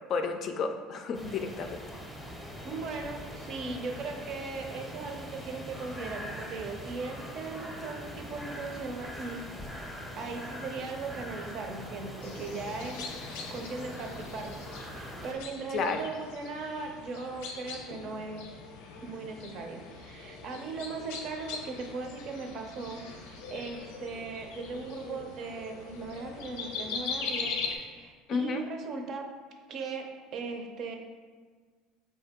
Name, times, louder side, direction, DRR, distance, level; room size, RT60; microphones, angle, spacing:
voice 1, 0.1-1.8 15.7-16.0 28.3-28.6, left 5 dB, 45° left, 6 dB, 0.4 m, -31 dB
sound 1, 1.1-15.3, equal, ahead, 0.7 m, -42 dB
voice 2, 2.6-9.4 10.1-13.1 13.5-14.5 14.9-18.4 19.0-27.5 27.8-29.2 29.7-30.1 30.3-31.0, right 4 dB, 50° right, 4 dB, 0.6 m, -38 dB
sound 2, 12.2-27.8, left 4 dB, 85° left, 0.6 m, -41 dB
4.3 x 2.7 x 3.6 m, 1.5 s
cardioid pair, 130°, 0 cm